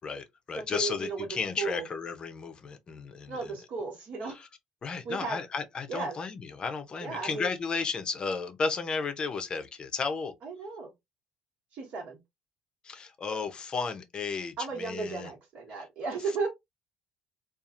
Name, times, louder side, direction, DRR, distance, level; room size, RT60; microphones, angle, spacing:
voice 1, 0.0-3.6 4.3-4.5 4.8-10.3 12.8-15.3, left 5 dB, 35° left, 0.5 m, -34 dB
voice 2, 0.7-1.3 1.6-1.8 3.3-4.4 5.0-5.4 5.9-6.2 7.0-7.5 10.4-10.9 11.7-12.2 14.6-16.5, right 4 dB, 65° right, 1.3 m, -34 dB
2.8 x 2.4 x 2.4 m
supercardioid pair, 90°, 3 cm